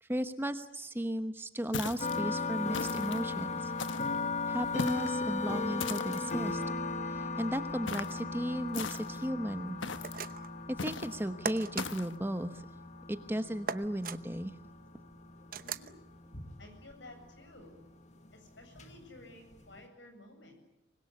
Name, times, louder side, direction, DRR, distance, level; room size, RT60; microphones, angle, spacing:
voice 1, 0.0-3.7 4.5-6.6 7.1-9.8 10.8-12.6 13.1-14.5, equal, 10° right, 9 dB, 1.0 m, -35 dB
sound 1, 1.7-2.2 2.7-3.2 3.8-4.2 4.8-5.2 5.8-6.3 7.9-8.2 8.7-9.3 9.8-10.2 10.8-11.2 11.8-12.1, left 4 dB, 90° left, 1.3 m, -39 dB
sound 2, 2.0-19.8, left 3 dB, 40° left, 1.8 m, -37 dB
sound 3, 10.0-10.6 11.5-11.9 13.7-14.2 15.5-15.9, right 6 dB, 50° right, 0.9 m, -38 dB
voice 2, 15.6-15.9 16.6-17.8 18.3-20.6, left 2 dB, 70° left, 6 dB, 7.9 m, -53 dB
25.0 x 21.0 x 9.7 m, 0.85 s
head